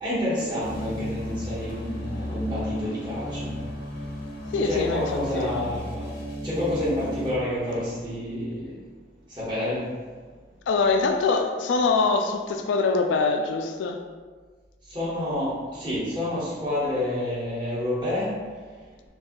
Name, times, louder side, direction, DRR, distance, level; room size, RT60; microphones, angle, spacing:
voice 1, 0.0-3.5 4.6-6.0 6.4-8.7 9.4-9.8 14.9-18.3, left 1 dB, 25° right, -10 dB, 1.1 m, -28 dB
sound 1, 0.6-7.3, equal, 65° left, 0.7 m, -34 dB
voice 2, 4.5-5.0 5.3-5.6 10.7-14.0, left 4 dB, 90° left, 5 dB, 0.3 m, -23 dB
2.6 x 2.3 x 3.6 m, 1.5 s
head